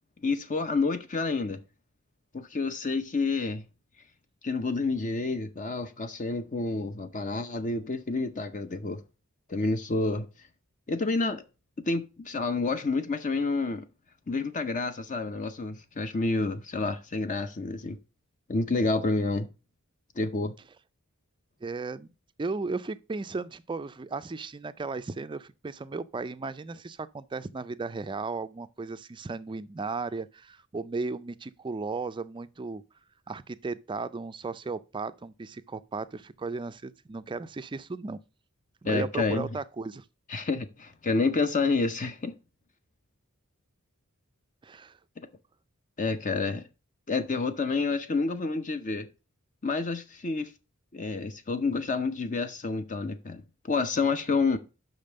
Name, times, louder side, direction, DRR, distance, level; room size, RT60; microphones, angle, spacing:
voice 1, 0.2-1.6 2.3-3.7 4.4-9.0 9.5-10.3 10.9-11.4 11.9-13.8 14.3-18.0 18.5-19.5 20.2-20.5 38.8-39.5 40.3-42.4 46.0-46.6 47.1-49.1 49.6-50.5 50.9-54.6, left 3 dB, 35° left, 0.6 m, -29 dB
voice 2, 21.6-22.1 22.4-32.8 33.3-38.2 38.8-40.0 44.6-45.0, right 3 dB, 20° right, 0.4 m, -35 dB
6.0 x 5.2 x 6.5 m
head